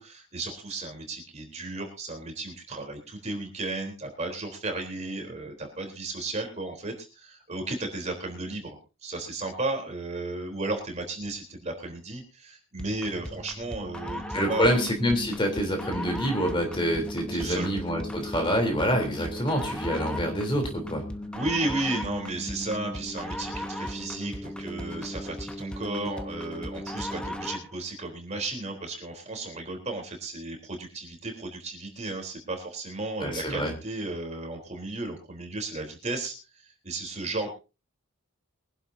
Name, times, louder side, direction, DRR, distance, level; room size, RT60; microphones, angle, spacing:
voice 1, 0.0-14.8 17.3-17.7 21.3-36.3 36.8-37.5, right 2 dB, 30° right, 3 dB, 3.7 m, -34 dB
sound 1, 12.8-27.7, left 1 dB, 5° left, 1.0 m, -36 dB
voice 2, 14.3-21.0 33.2-33.7, equal, 25° left, 3 dB, 3.4 m, -26 dB
23.5 x 11.5 x 2.7 m, 0.31 s
head